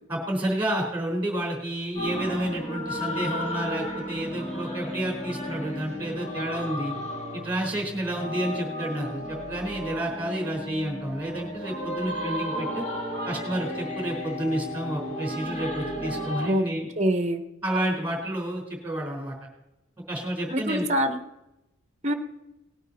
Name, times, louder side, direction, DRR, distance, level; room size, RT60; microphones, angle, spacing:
voice 1, 0.1-6.9 7.3-12.8 13.2-16.9 17.6-19.3 20.1-20.8, right 1 dB, 10° right, 0 dB, 3.8 m, -30 dB
sound 1, 2.0-16.5, equal, 30° left, 2.1 m, -34 dB
voice 2, 17.0-17.4 20.5-21.2 22.0-22.1, equal, 35° right, 8 dB, 1.0 m, -24 dB
19.0 x 9.1 x 4.1 m, 0.93 s
head